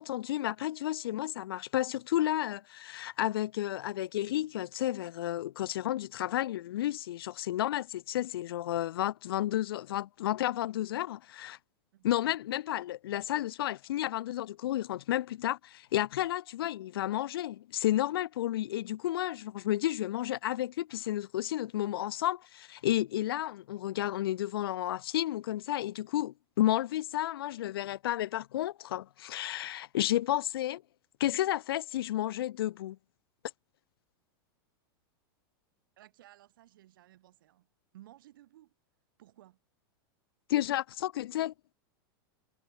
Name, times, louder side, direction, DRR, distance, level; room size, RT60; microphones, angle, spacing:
voice 1, 0.0-11.6 12.0-30.8 31.2-33.0 40.5-41.7, left 13 dB, 80° left, 0.6 m, -32 dB
voice 2, 36.0-37.7 37.9-38.7 39.2-39.6, right 14 dB, 65° right, 5.0 m, -57 dB
supercardioid pair, 175°, 12 cm